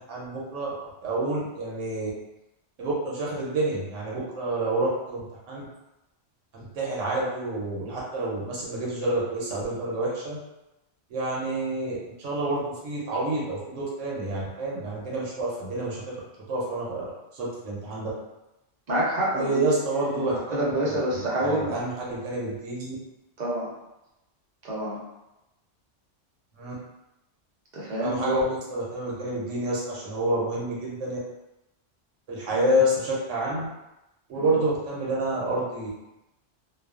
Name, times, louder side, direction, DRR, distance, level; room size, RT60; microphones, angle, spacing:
voice 1, 0.1-0.7 1.0-2.1 2.8-5.6 6.5-10.4 11.1-16.2 16.5-17.1 17.3-18.1 19.3-21.0 21.4-22.9 26.6-26.7 28.0-31.2 32.3-33.7 34.3-36.1, right 1 dB, 90° right, -4 dB, 1.0 m, -28 dB
voice 2, 18.9-19.6 19.9-21.7 23.4-23.7 24.6-25.0 27.7-28.4 32.5-32.7 34.4-34.5, right 1 dB, 45° right, -5 dB, 0.7 m, -28 dB
2.3 x 2.3 x 2.3 m, 0.94 s
omnidirectional pair, 1.2 m